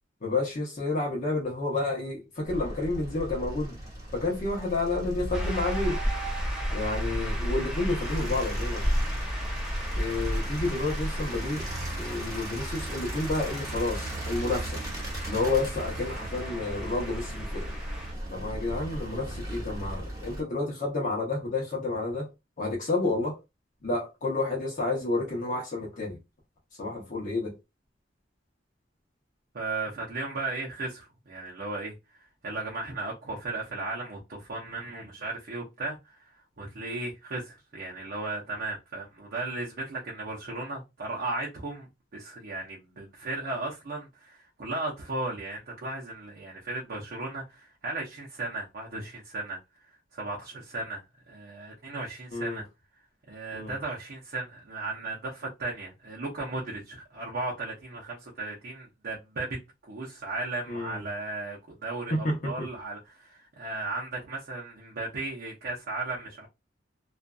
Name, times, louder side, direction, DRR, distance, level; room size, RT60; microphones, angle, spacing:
voice 1, 0.2-3.8 4.1-6.0 6.7-8.9 10.0-11.6 12.0-14.8 15.3-17.7 18.3-22.3 22.6-23.4 23.8-26.2 26.8-27.5 52.3-52.6 53.5-53.7 60.7-61.0 62.1-62.7, left 2 dB, 45° left, 0.8 m, -30 dB
sound 1, 2.5-20.4, equal, 20° right, 1.0 m, -33 dB
Shout / Cheering / Applause, 5.3-18.1, equal, 5° right, 0.7 m, -40 dB
voice 2, 29.5-31.9 32.4-36.3 36.6-49.6 50.1-52.6 53.3-59.6 59.8-66.5, right 2 dB, 55° right, 0.6 m, -36 dB
2.6 x 2.3 x 2.2 m
head